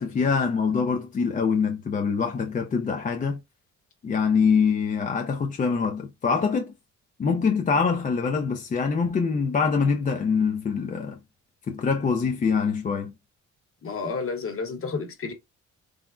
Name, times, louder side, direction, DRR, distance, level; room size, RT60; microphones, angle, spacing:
voice 1, 0.0-3.4 4.0-6.7 7.2-11.2 11.7-13.1, left 5 dB, 25° left, 0.4 m, -24 dB
voice 2, 13.8-15.3, left 4 dB, 45° left, 1.0 m, -31 dB
3.6 x 2.0 x 2.4 m
cardioid pair, 90°, 30 cm